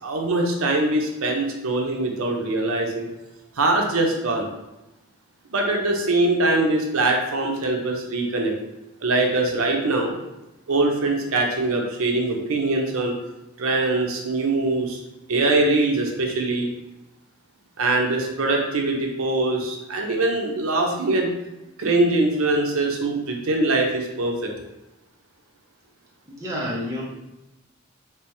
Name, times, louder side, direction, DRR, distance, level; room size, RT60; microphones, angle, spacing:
voice 1, 0.0-3.1 3.6-4.5 5.5-8.5 9.0-10.1 10.7-13.2 13.6-15.0 15.3-16.7 17.8-21.3 21.8-24.5, right 2 dB, 75° right, 2 dB, 0.6 m, -22 dB
voice 2, 26.2-27.0, equal, 15° right, -5 dB, 0.7 m, -29 dB
3.3 x 3.3 x 3.0 m, 0.97 s
head